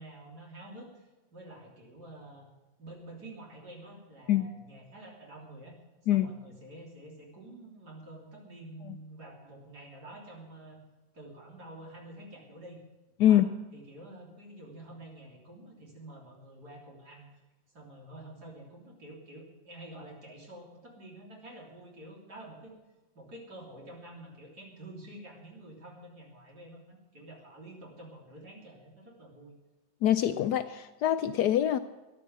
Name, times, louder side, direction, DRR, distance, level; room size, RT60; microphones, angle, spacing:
voice 1, 0.0-2.5 2.8-5.8 6.1-10.8 11.1-12.8 13.2-13.5 13.7-17.3 17.7-22.7 23.1-29.6, right 1 dB, 55° right, -1 dB, 3.9 m, -48 dB
voice 2, 30.0-31.8, left 11 dB, 70° left, 10 dB, 1.0 m, -24 dB
14.0 x 10.5 x 7.0 m, 1.1 s
omnidirectional pair, 2.0 m